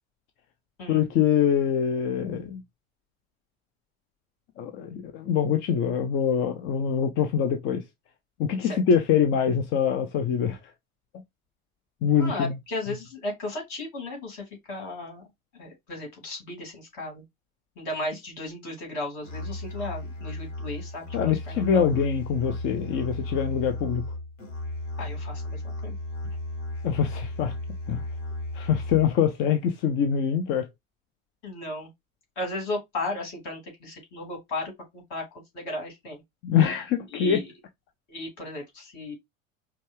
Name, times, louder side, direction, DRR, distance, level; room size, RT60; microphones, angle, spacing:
voice 1, 0.9-2.6 4.6-7.8 8.4-10.6 12.0-12.5 21.1-24.0 26.8-27.5 27.9-28.0 28.5-30.7 36.4-37.4, left 8 dB, 30° left, 0.5 m, -24 dB
voice 2, 12.2-15.2 15.6-17.2 17.8-21.9 25.0-26.0 31.4-31.9 32.4-36.2 37.1-37.5 38.1-39.1, left 2 dB, 45° left, 2.8 m, -35 dB
Musical instrument, 19.2-29.2, left 1 dB, 65° left, 1.7 m, -35 dB
5.1 x 2.3 x 3.3 m
figure-of-eight pair, 75°, 41 cm